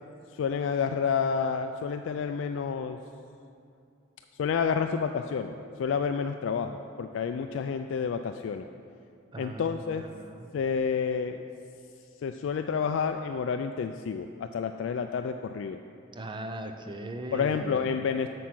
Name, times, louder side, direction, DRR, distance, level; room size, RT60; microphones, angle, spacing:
voice 1, 0.3-3.0 4.4-8.7 9.4-10.1 10.5-11.5 12.2-15.8 17.3-18.3, left 6 dB, 65° left, 7 dB, 0.3 m, -29 dB
voice 2, 9.3-10.5 16.1-17.9, right 1 dB, 25° right, 6 dB, 0.5 m, -39 dB
8.1 x 6.2 x 6.0 m, 2.5 s
head